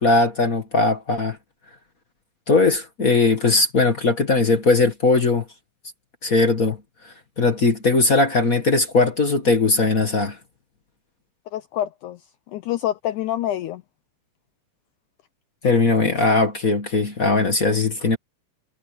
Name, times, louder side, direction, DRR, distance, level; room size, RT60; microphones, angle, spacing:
voice 1, 0.0-1.4 2.5-5.4 6.2-6.8 7.0-10.4 15.6-18.2, left 3 dB, 40° left, 1.2 m, -19 dB
voice 2, 11.5-12.2 12.5-13.8, left 12 dB, 80° left, 1.8 m, -26 dB
omnidirectional pair, 4.3 m